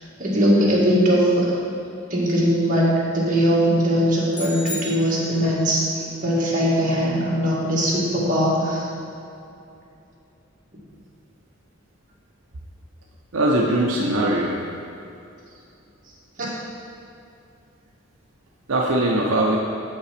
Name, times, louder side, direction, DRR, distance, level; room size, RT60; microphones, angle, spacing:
voice 1, 0.2-1.5 2.1-5.8 6.2-8.8 16.4-16.5, equal, 40° right, -6 dB, 1.8 m, -20 dB
sound 1, 4.3-5.7, left 2 dB, 20° left, 1.3 m, -35 dB
voice 2, 13.3-14.6 18.7-19.6, right 1 dB, 75° right, -1 dB, 0.7 m, -20 dB
7.5 x 5.5 x 5.0 m, 2.6 s
head